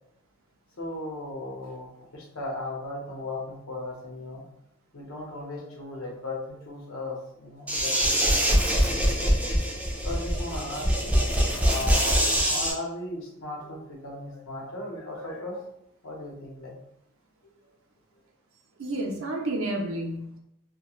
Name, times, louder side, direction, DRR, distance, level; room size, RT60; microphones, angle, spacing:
voice 1, 0.8-4.4 4.9-9.3 9.8-11.2 11.6-12.2 12.5-15.6 16.0-16.8 17.4-17.5, left 2 dB, 75° left, -2 dB, 0.8 m, -37 dB
sound 1, 7.7-12.7, equal, 5° right, 0.4 m, -24 dB
voice 2, 18.8-20.4, right 1 dB, 70° right, 0 dB, 0.5 m, -30 dB
2.3 x 2.1 x 3.0 m, 0.80 s
head